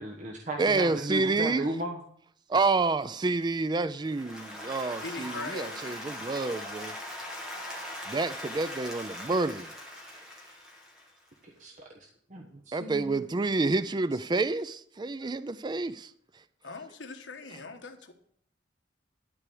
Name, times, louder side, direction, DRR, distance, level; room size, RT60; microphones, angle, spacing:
voice 1, 0.0-2.0 11.4-11.7 12.3-13.2, right 1 dB, 40° right, 1.2 m, -35 dB
voice 2, 0.6-1.7 2.5-6.9 8.1-9.7 12.7-16.1, right 3 dB, 25° right, 0.4 m, -28 dB
Applause, 4.0-11.2, left 1 dB, 5° right, 2.2 m, -40 dB
voice 3, 5.0-6.1 16.6-18.1, left 4 dB, 75° left, 1.4 m, -41 dB
12.5 x 4.7 x 8.5 m
head